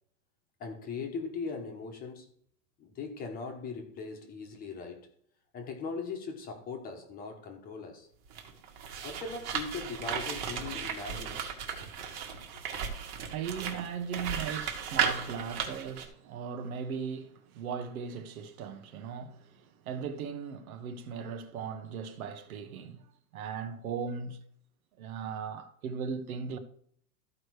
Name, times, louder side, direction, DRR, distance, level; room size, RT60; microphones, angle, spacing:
voice 1, 0.6-2.3 2.8-5.1 5.5-8.1 9.0-11.4, left 4 dB, 20° left, 1.3 m, -39 dB
sound 1, 8.3-16.0, right 7 dB, 40° right, 1.8 m, -35 dB
voice 2, 13.0-23.0 23.3-24.4 25.0-26.6, right 6 dB, 60° right, 1.4 m, -38 dB
14.0 x 5.0 x 4.8 m
supercardioid pair, 160°, 47 cm